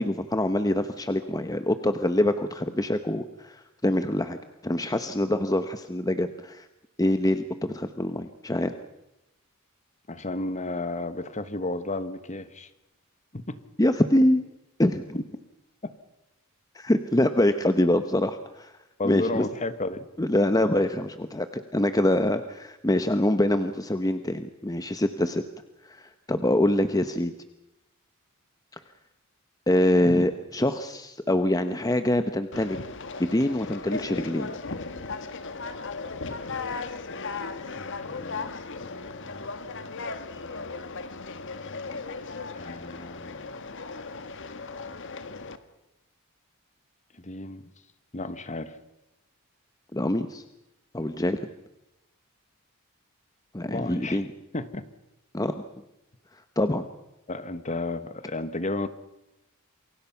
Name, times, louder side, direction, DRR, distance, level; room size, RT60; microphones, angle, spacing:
voice 1, 0.0-4.4 4.6-6.7 7.0-8.7 13.8-14.4 14.8-15.2 16.7-18.7 19.0-19.5 20.2-25.4 25.8-27.3 29.7-32.8 33.2-34.5 49.9-50.4 50.9-51.4 53.5-54.3 55.3-55.5 56.6-56.9, left 1 dB, 15° left, 9 dB, 1.0 m, -25 dB
voice 2, 10.1-12.7 13.3-13.6 15.1-15.2 15.8-15.9 19.0-20.1 37.8-38.5 38.8-39.4 42.5-43.4 47.2-47.7 48.1-48.7 53.6-54.2 54.5-54.8 57.3-58.9, left 2 dB, 35° left, 12 dB, 1.3 m, -33 dB
Conversation, 32.5-45.6, left 4 dB, 60° left, 1.6 m, -36 dB
28.0 x 23.5 x 5.8 m, 0.93 s
head